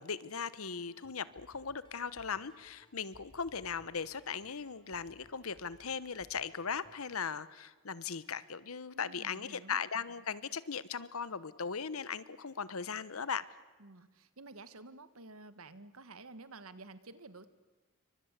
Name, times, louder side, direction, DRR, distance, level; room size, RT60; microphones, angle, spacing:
voice 1, 0.0-13.5, left 6 dB, 85° left, 17 dB, 1.1 m, -38 dB
sound 1, 0.6-7.0, equal, 20° left, 3.7 m, -64 dB
voice 2, 8.9-9.8 13.8-17.5, right 3 dB, 85° right, 13 dB, 1.5 m, -51 dB
28.5 x 24.5 x 8.2 m, 1.3 s
head